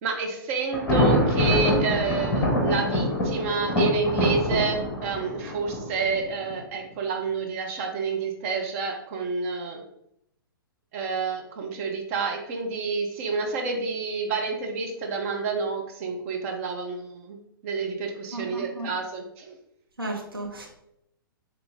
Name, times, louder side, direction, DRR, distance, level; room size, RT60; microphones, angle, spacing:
voice 1, 0.0-9.8 10.9-17.4 17.6-19.5, right 4 dB, 40° right, 2 dB, 1.1 m, -29 dB
Thunder, 0.7-6.5, left 1 dB, 15° left, 1.6 m, -25 dB
voice 2, 18.3-18.9 20.0-20.7, right 2 dB, 75° right, 0 dB, 1.5 m, -34 dB
7.9 x 3.1 x 3.9 m, 0.79 s
figure-of-eight pair, 115°, 12 cm